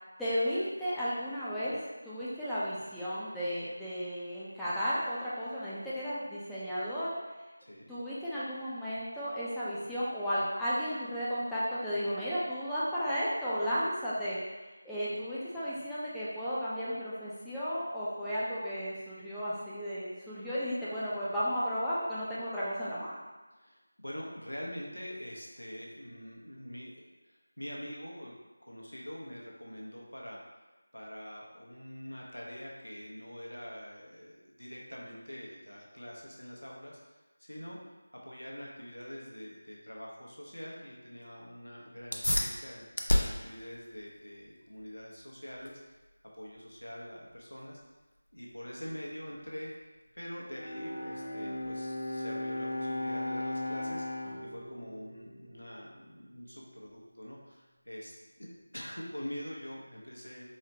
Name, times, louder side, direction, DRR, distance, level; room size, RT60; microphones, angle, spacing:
voice 1, 0.2-7.1 7.9-14.4 14.8-23.1, equal, ahead, -13 dB, 0.3 m, -34 dB
voice 2, 7.6-7.9 23.6-28.3 28.6-30.4 30.9-37.9 38.2-42.8 43.2-46.0 46.3-47.8 48.3-49.7 50.1-58.5 58.7-60.5, equal, 90° left, -3 dB, 0.8 m, -44 dB
sound 1, 42.0-52.0, left 1 dB, 75° left, 0.4 m, -37 dB
Bowed string instrument, 50.5-56.0, left 1 dB, 55° left, 0.9 m, -37 dB
4.0 x 2.1 x 2.7 m, 1.2 s
figure-of-eight pair, 165°, 0 cm